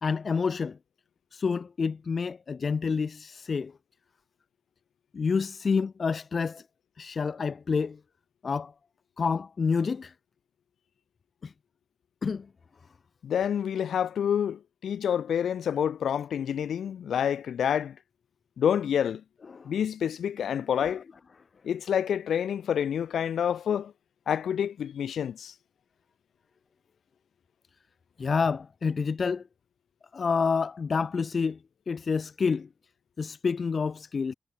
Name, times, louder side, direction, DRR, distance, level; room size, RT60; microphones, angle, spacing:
voice 1, 0.0-0.8 1.3-3.7 5.1-6.6 7.0-8.0 8.4-8.7 9.2-10.1 11.4-11.5 12.2-12.5 19.5-19.7 20.8-20.9 28.2-29.4 30.1-31.6 31.9-32.7 33.2-34.3, left 5 dB, 60° left, 0.4 m, -28 dB
voice 2, 13.2-18.0 18.6-19.2 19.6-21.0 21.6-23.9 24.3-25.5, left 8 dB, 85° left, 1.3 m, -28 dB
cardioid pair, 50°, 0 cm